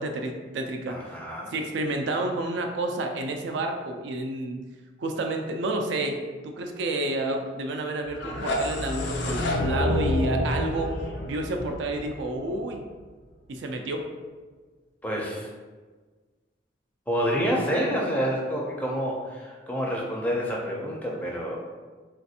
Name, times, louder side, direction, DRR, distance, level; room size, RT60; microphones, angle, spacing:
voice 1, 0.0-1.0 1.5-4.6 5.0-6.2 6.4-10.9 11.2-12.8 13.5-14.1, right 2 dB, 75° right, 4 dB, 0.4 m, -30 dB
voice 2, 0.9-1.5 15.0-15.5 17.1-21.6, equal, 10° left, -3 dB, 0.4 m, -28 dB
sound 1, 8.1-13.0, left 1 dB, 85° left, 0.4 m, -28 dB
3.3 x 2.5 x 2.7 m, 1.4 s
head